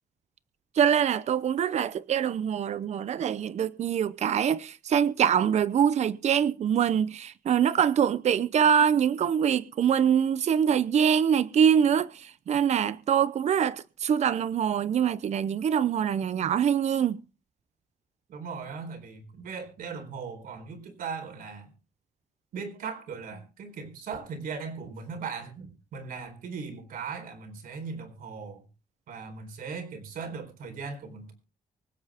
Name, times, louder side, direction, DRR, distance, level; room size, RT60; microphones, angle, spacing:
voice 1, 0.8-17.2, right 8 dB, 50° right, 0.7 m, -24 dB
voice 2, 18.3-21.7 22.5-28.6 29.1-31.3, right 5 dB, 80° right, 4.2 m, -38 dB
24.5 x 8.3 x 3.6 m
cardioid pair, 145°, 14 cm